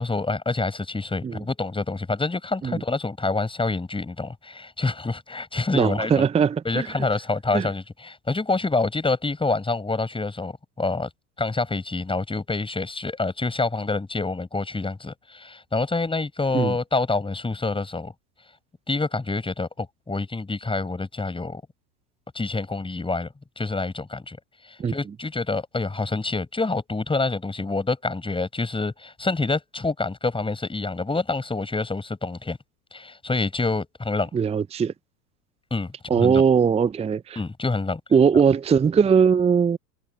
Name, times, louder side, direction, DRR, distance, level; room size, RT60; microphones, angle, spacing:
voice 1, 0.0-6.3 6.6-11.1 11.4-18.1 18.9-21.6 22.3-24.4 24.6-32.6 32.9-34.3 35.7-36.4 37.4-38.0, left 3 dB, 10° left, 7.6 m, -27 dB
voice 2, 5.7-6.9 7.5-7.7 16.5-16.7 24.8-24.9 34.3-34.9 36.1-37.4 38.1-39.8, right 6 dB, 10° right, 0.8 m, -20 dB
figure-of-eight pair, 80°, 49 cm